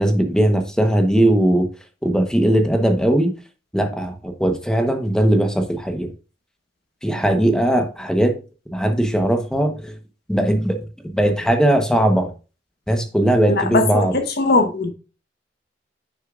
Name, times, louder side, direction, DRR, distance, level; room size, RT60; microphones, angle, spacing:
voice 1, 0.0-1.7 2.0-3.3 3.7-6.1 7.0-8.3 8.7-10.0 10.3-10.8 11.0-12.3 12.9-14.2, right 1 dB, 5° left, 1.0 m, -19 dB
voice 2, 13.6-14.1 14.4-14.9, left 3 dB, 65° left, 1.1 m, -19 dB
9.8 x 6.5 x 2.5 m
head